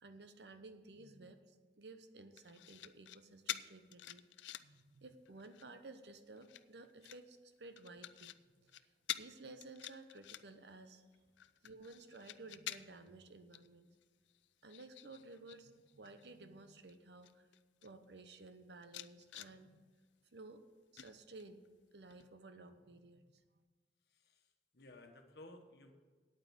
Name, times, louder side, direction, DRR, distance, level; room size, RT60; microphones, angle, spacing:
voice 1, 0.0-4.2 4.6-11.1 11.6-13.9 14.6-17.5 17.8-19.9 20.3-20.6 20.9-21.6 21.9-23.4, right 2 dB, 70° right, 9 dB, 0.9 m, -55 dB
sound 1, 2.4-3.2 3.5-4.8 5.3-5.7 6.4-7.2 7.8-8.4 8.7-8.8 9.1-9.3 9.6-10.7 11.1-13.1 13.5-13.7 14.0-15.6 15.9-16.3 16.9-17.0 17.2-17.9 18.4-18.5 18.8-19.5 21.0-21.7 22.1-22.3, left 13 dB, 85° left, 0.4 m, -47 dB
voice 2, 24.0-25.9, left 2 dB, 65° left, 5 dB, 1.3 m, -57 dB
9.1 x 8.9 x 6.4 m, 1.4 s
head